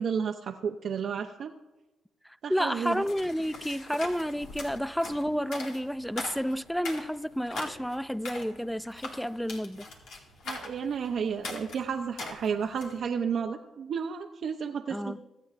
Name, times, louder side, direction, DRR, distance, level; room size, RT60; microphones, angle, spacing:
voice 1, 0.0-1.5 2.4-3.0 10.5-15.2, right 6 dB, 60° right, 0.6 m, -32 dB
voice 2, 2.2-9.9 14.9-15.2, equal, ahead, 0.3 m, -31 dB
sound 1, 2.8-13.0, left 3 dB, 80° left, 1.9 m, -42 dB
24.0 x 8.4 x 2.5 m
cardioid pair, 90°, 0 cm